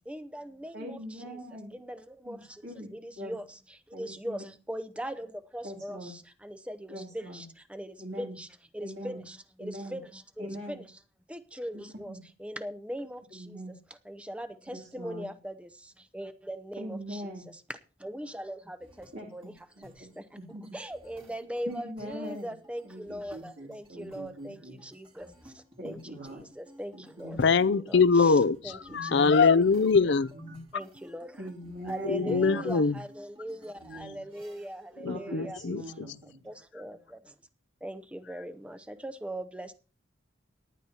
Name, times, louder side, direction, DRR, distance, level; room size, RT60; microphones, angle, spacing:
voice 1, 0.1-1.4 1.7-8.5 8.7-10.9 11.3-13.6 13.9-17.6 18.0-27.4 27.8-29.4 30.7-31.5 31.9-35.6 36.4-37.3 37.8-39.7, equal, 5° right, 0.8 m, -41 dB
voice 2, 0.7-1.7 2.3-2.9 3.2-3.3 3.9-4.5 5.6-6.1 6.9-7.4 8.0-8.3 8.8-9.2 9.6-10.0 10.4-10.8 11.7-12.2 13.3-13.7 14.7-15.3 16.8-17.4 19.1-19.3 19.8-20.1 20.4-20.6 21.7-22.5 22.8-24.8 25.8-26.4 26.9-27.4 28.9-29.3 30.3-30.6 31.4-32.8 33.8-34.2 35.1-36.4, equal, 65° right, 2.8 m, -42 dB
sound 1, 18.8-34.9, right 2 dB, 30° right, 2.0 m, -55 dB
voice 3, 27.4-30.3 32.0-32.9 35.0-36.1, left 4 dB, 65° left, 0.5 m, -23 dB
18.0 x 11.0 x 2.9 m
head